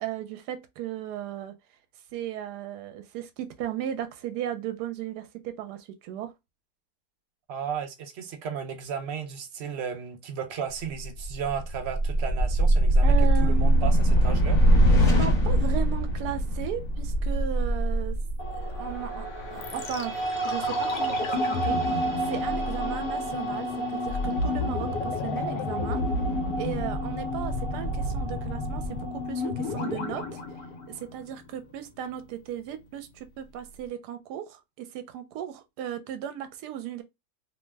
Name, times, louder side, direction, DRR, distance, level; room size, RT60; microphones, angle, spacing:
voice 1, 0.0-1.6 2.1-6.3 13.0-14.0 15.0-18.2 18.5-20.1 20.4-21.2 21.4-26.0 26.6-30.4 30.9-37.0, right 10 dB, 85° right, 1.1 m, -36 dB
voice 2, 7.5-13.1 13.4-14.6, right 7 dB, 65° right, 0.7 m, -34 dB
sound 1, 11.0-19.4, right 1 dB, 55° left, 1.3 m, -22 dB
sound 2, 18.4-30.6, right 2 dB, 35° left, 0.9 m, -33 dB
sound 3, 19.6-31.6 31.9-32.0, left 3 dB, 75° left, 1.1 m, -31 dB
2.9 x 2.1 x 3.2 m
omnidirectional pair, 1.7 m